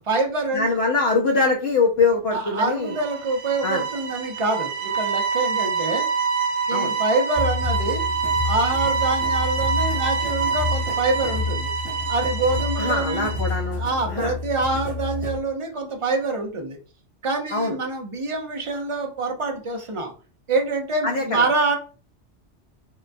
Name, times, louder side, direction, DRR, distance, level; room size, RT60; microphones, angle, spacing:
voice 1, 0.0-0.7 2.3-6.1 6.7-8.1 8.4-11.7 12.1-13.3 13.8-16.8 17.2-20.1 20.5-21.8, right 3 dB, 55° right, 3 dB, 0.3 m, -25 dB
voice 2, 0.5-2.9 3.6-3.8 6.7-6.9 12.8-13.8 14.1-14.3 17.5-17.8 21.0-21.5, left 3 dB, 65° left, 0 dB, 0.8 m, -23 dB
sound 1, 2.8-13.6, right 5 dB, 90° right, 0.9 m, -26 dB
sound 2, 7.4-15.4, left 3 dB, 25° right, 1.1 m, -29 dB
3.7 x 2.2 x 2.4 m, 0.37 s
omnidirectional pair, 1.2 m